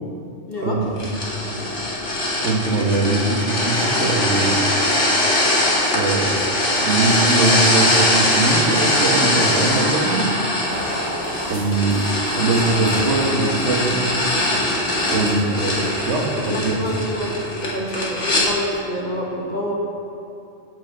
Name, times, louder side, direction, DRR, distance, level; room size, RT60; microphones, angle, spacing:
voice 1, 0.6-1.1 2.4-4.6 5.9-6.5 6.8-10.3 11.4-14.1 15.1-16.7, right 3 dB, 65° right, 0 dB, 1.6 m, -22 dB
sound 1, 1.0-18.4, left 1 dB, 70° left, 2.4 m, -21 dB
sound 2, 10.7-14.6 15.1-15.6 15.9-16.3, equal, 50° right, 2.3 m, -36 dB
voice 2, 16.3-17.3 17.6-19.7, equal, 35° left, -3 dB, 1.8 m, -27 dB
9.8 x 5.4 x 7.8 m, 2.8 s
omnidirectional pair, 1.3 m